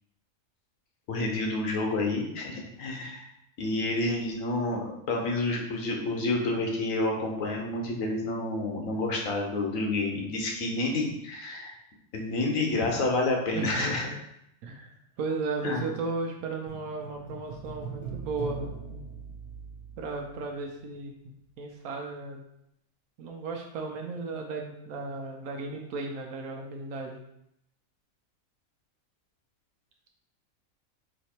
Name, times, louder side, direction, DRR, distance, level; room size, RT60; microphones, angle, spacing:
voice 1, 1.1-3.3 3.6-11.7 12.1-14.1 15.6-15.9, left 2 dB, 70° left, 1 dB, 1.3 m, -29 dB
voice 2, 13.5-14.2 14.6-19.0 20.0-21.1 21.6-22.4 23.2-27.2, right 3 dB, 85° right, 1 dB, 1.1 m, -35 dB
sound 1, 16.7-21.1 21.4-21.5, right 6 dB, 10° left, 1.1 m, -41 dB
4.3 x 2.9 x 4.3 m, 0.77 s
omnidirectional pair, 1.5 m